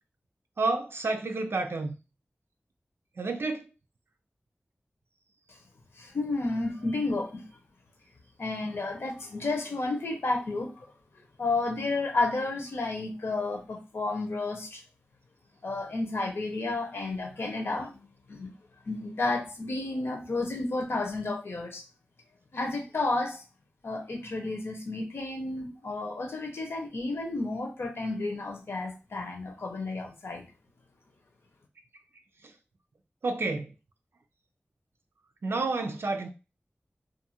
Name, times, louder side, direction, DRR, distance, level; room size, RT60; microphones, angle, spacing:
voice 1, 0.6-2.0 3.2-3.7 33.2-33.7 35.4-36.3, right 3 dB, 70° right, 0.4 m, -29 dB
voice 2, 6.0-7.5 8.4-10.9 11.4-14.8 15.6-18.5 18.9-21.8 22.5-23.4 23.8-30.4, left 2 dB, 85° left, 0.8 m, -31 dB
2.6 x 2.4 x 2.8 m
wide cardioid pair, 55°, 4 cm